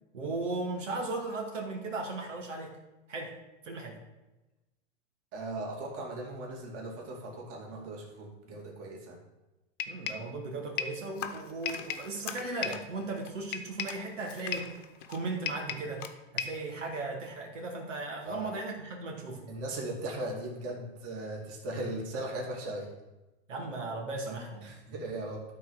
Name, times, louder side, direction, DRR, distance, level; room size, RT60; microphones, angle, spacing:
voice 1, 0.1-2.8 3.1-3.3 3.6-4.0 9.9-14.8 15.1-16.1 16.3-19.5 23.5-24.7, right 3 dB, 90° right, 0 dB, 2.3 m, -37 dB
voice 2, 5.3-9.2 18.2-18.6 19.5-22.9 24.6-25.6, right 1 dB, 40° right, -1 dB, 2.6 m, -38 dB
sound 1, 9.8-10.3 10.8-11.0 11.7-12.1 12.6-12.9 13.5-14.0 14.5-14.8 15.5-15.9 16.4-16.7, left 9 dB, 30° left, 0.6 m, -35 dB
sound 2, 11.1-16.1, left 8 dB, 85° left, 1.3 m, -45 dB
12.0 x 4.2 x 6.4 m, 1.0 s
hypercardioid pair, 125°, 36 cm